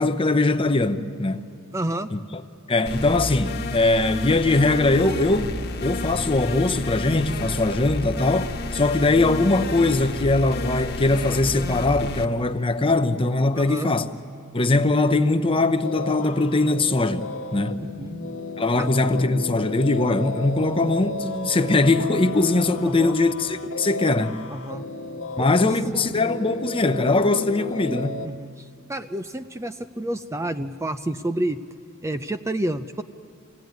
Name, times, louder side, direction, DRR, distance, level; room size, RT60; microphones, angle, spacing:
voice 1, 0.0-1.5 2.1-2.4 2.7-5.5 5.8-14.1 14.5-17.2 17.5-17.8 18.6-24.4 25.4-28.2, left 2 dB, 25° left, 0.8 m, -21 dB
voice 2, 1.7-2.1 13.5-13.9 17.8-18.2 18.8-18.9 22.8-23.2 24.5-24.8 25.4-25.7 28.2-31.6 32.0-33.0, right 1 dB, 15° right, 0.5 m, -29 dB
sound 1, 2.9-12.3, left 2 dB, 50° left, 1.4 m, -31 dB
sound 2, 15.8-28.3, left 3 dB, 80° left, 1.4 m, -34 dB
25.5 x 17.5 x 9.4 m
head